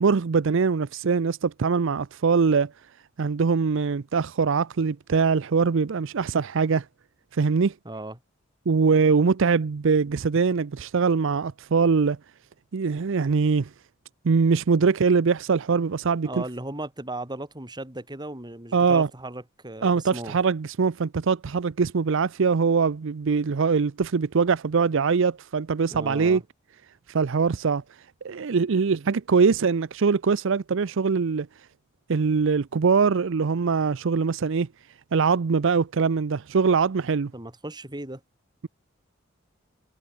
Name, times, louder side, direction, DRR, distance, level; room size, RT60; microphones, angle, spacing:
voice 1, 0.0-2.7 3.2-6.9 7.3-7.7 8.7-12.2 12.7-13.7 14.2-16.4 18.7-19.1 19.8-26.4 27.1-27.8 28.2-31.5 32.1-34.7 35.1-37.3, right 5 dB, 65° right, 0.5 m, -22 dB
voice 2, 7.8-8.2 16.2-20.4 25.9-26.4 37.3-38.2, right 1 dB, 20° right, 4.4 m, -36 dB
head